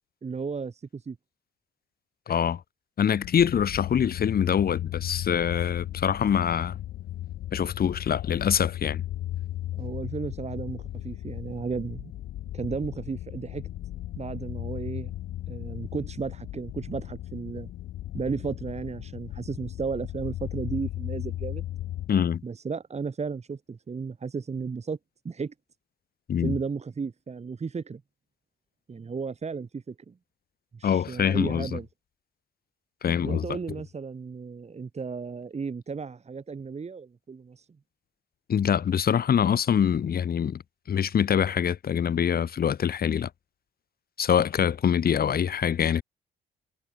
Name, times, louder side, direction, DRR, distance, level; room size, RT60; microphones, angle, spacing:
voice 1, 0.2-1.2 9.7-12.1 12.5-13.7 14.2-15.1 15.5-17.7 18.1-21.6 22.4-25.0 25.2-25.5 26.4-28.0 28.9-30.1 30.7-31.9 33.2-37.6, right 5 dB, 35° right, 2.5 m, -34 dB
voice 2, 2.3-2.6 3.0-6.8 7.5-9.0 22.1-22.4 26.3-26.6 30.8-31.8 33.0-33.6 38.5-40.6 40.9-43.3 44.2-46.0, left 8 dB, 50° left, 1.5 m, -24 dB
sound 1, 3.2-22.1, left 13 dB, 80° left, 1.6 m, -36 dB
cardioid pair, 90°, 20 cm